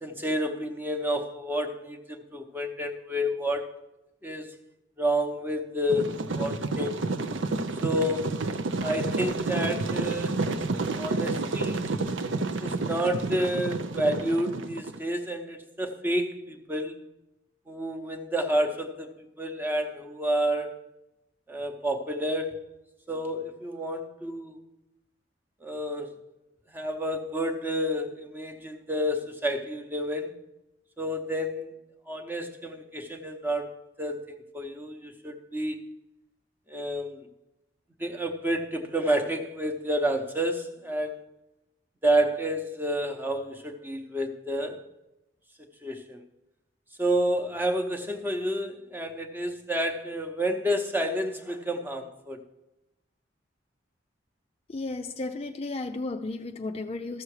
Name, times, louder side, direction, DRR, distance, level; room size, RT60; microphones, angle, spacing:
voice 1, 0.0-3.7 4.2-4.5 5.0-7.0 7.8-8.5 8.8-10.4 11.0-11.9 12.6-17.0 17.7-20.8 21.5-22.7 23.1-24.6 25.6-26.2 26.7-30.3 31.0-31.8 32.1-35.9 36.7-37.3 38.0-41.2 42.0-44.8 45.8-46.2 47.0-52.4, equal, 10° right, 0.8 m, -30 dB
sound 1, 5.9-15.0, right 3 dB, 85° right, 0.6 m, -30 dB
voice 2, 54.7-57.2, left 2 dB, 30° left, 0.4 m, -34 dB
13.5 x 6.9 x 4.8 m
head